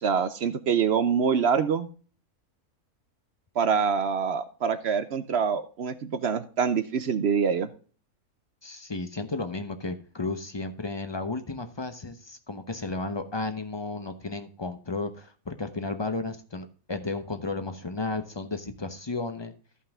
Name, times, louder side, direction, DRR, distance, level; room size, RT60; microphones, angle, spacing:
voice 1, 0.0-1.9 3.6-7.7, right 6 dB, 60° right, 12 dB, 0.7 m, -25 dB
voice 2, 8.6-19.5, left 3 dB, 25° left, 9 dB, 0.6 m, -33 dB
14.0 x 5.6 x 3.5 m, 0.39 s
omnidirectional pair, 1.6 m